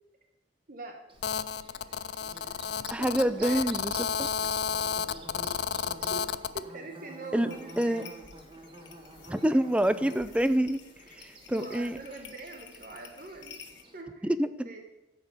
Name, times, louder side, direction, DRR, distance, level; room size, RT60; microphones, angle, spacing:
voice 1, 0.7-1.0 3.0-3.6 6.1-6.2 6.5-8.0 11.5-13.6 13.9-14.3 14.6-14.8, right 2 dB, 50° right, 3 dB, 1.2 m, -42 dB
Bird / Buzz, 1.1-14.0, right 1 dB, 30° right, 1.5 m, -49 dB
Telephone, 1.2-6.6, left 7 dB, 60° left, 0.4 m, -32 dB
voice 2, 2.9-3.9 4.2-4.3 7.3-7.5 7.8-8.0 9.3-10.8 11.1-12.0 14.2-14.7, right 1 dB, 5° right, 13 dB, 0.5 m, -26 dB
sound 1, 7.5-13.8, left 6 dB, 80° left, 1.3 m, -52 dB
14.0 x 5.5 x 8.0 m, 0.99 s
head